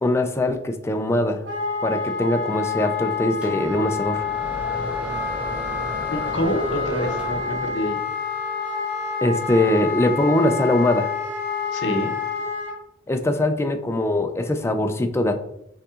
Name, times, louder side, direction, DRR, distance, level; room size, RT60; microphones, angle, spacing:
voice 1, 0.0-1.4 1.8-4.2 9.2-11.1 13.1-15.3, left 1 dB, 15° left, 7 dB, 0.3 m, -22 dB
Wind instrument woodwind instrument, 1.4-12.8, left 5 dB, 60° right, 1.6 m, -28 dB
sound 1, 3.4-7.9, equal, 5° right, 0.8 m, -34 dB
voice 2, 6.1-8.0 11.7-12.1, equal, 60° left, 3 dB, 0.7 m, -26 dB
5.5 x 3.7 x 2.4 m, 0.78 s
head